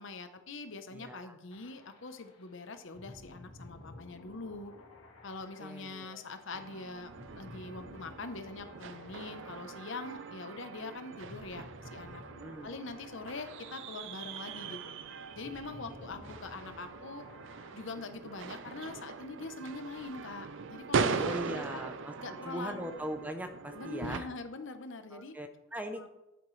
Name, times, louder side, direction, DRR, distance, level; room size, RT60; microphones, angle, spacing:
voice 1, 0.0-4.7 5.2-7.1 7.4-12.2 12.6-14.9 15.3-17.2 17.7-21.8 22.2-23.0 23.7-25.4 25.9-26.1, left 3 dB, 60° left, 8 dB, 0.8 m, -43 dB
voice 2, 0.9-1.3 5.6-6.2 12.4-12.7 16.0-16.1 21.2-22.1 22.4-24.3 25.1-26.1, right 1 dB, 10° right, 7 dB, 0.6 m, -40 dB
sound 1, 1.5-17.9, left 1 dB, 80° left, 1.7 m, -54 dB
sound 2, 6.5-24.2, right 5 dB, 60° right, 0.5 m, -40 dB
10.0 x 8.8 x 3.2 m, 0.96 s
head